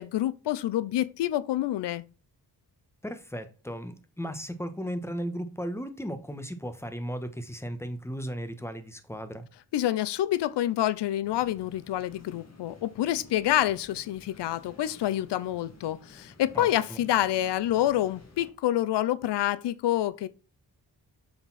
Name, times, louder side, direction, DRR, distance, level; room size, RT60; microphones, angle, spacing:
voice 1, 0.0-2.0 9.7-20.3, left 13 dB, 80° left, 0.5 m, -27 dB
voice 2, 3.0-9.4 16.5-17.0, equal, 5° left, 1.2 m, -36 dB
sound 1, 11.2-18.5, left 3 dB, 40° left, 1.9 m, -52 dB
6.7 x 4.2 x 4.1 m
cardioid pair, 55°, 41 cm